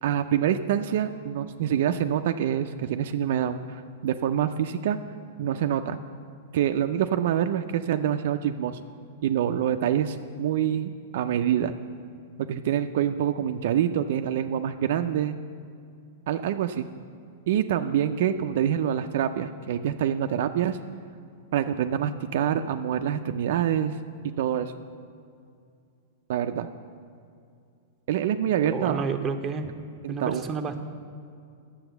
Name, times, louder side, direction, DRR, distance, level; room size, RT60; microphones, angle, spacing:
voice 1, 0.0-5.0 5.4-6.0 6.5-8.8 9.2-11.7 12.4-15.4 16.3-16.9 17.5-20.8 21.5-24.0 24.4-24.7 26.3-26.7 28.1-29.0 30.0-30.4, right 10 dB, 65° right, 8 dB, 0.4 m, -26 dB
voice 2, 28.7-29.7 30.1-30.8, right 5 dB, 25° right, 6 dB, 0.8 m, -30 dB
8.9 x 7.0 x 6.9 m, 2.4 s
hypercardioid pair, 125°, 0 cm